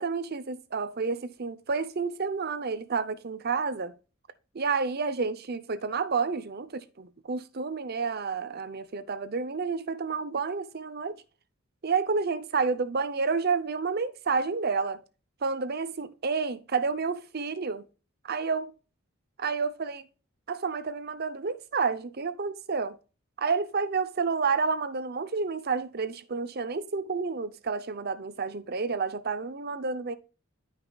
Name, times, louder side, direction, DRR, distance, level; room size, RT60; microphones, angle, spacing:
voice 1, 0.0-3.9 4.5-11.2 11.8-15.0 15.4-17.8 18.2-18.7 19.4-20.0 20.5-23.0 23.4-30.2, right 4 dB, 50° right, 0.7 m, -30 dB
12.5 x 5.3 x 2.3 m
head